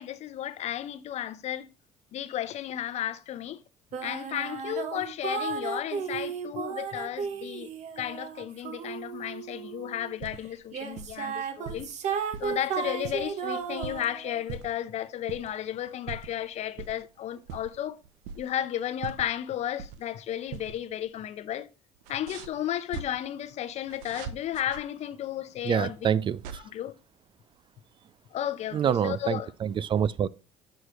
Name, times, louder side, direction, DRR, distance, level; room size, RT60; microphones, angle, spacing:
voice 1, 0.0-1.7 2.1-3.6 4.0-7.7 8.0-11.9 12.4-18.0 18.4-21.7 22.1-25.9 26.7-26.9 28.3-29.5, left 11 dB, 55° left, 0.7 m, -33 dB
sound 1, 3.9-10.1 10.7-14.4, right 7 dB, 60° right, 1.1 m, -34 dB
sound 2, 10.0-10.6 10.9-11.2 11.6-12.6 12.9-14.1 14.5-14.9 15.3-15.6 15.9-16.4 16.8-17.0 17.4-18.7 19.0-20.2 20.5-20.8 21.0-21.1 22.0-23.0 23.9-24.8 25.8-26.6, right 7 dB, 75° right, 0.7 m, -41 dB
voice 2, 25.6-26.6 28.7-30.3, right 8 dB, 35° right, 0.4 m, -26 dB
6.3 x 6.3 x 3.1 m
hypercardioid pair, 65°, 14 cm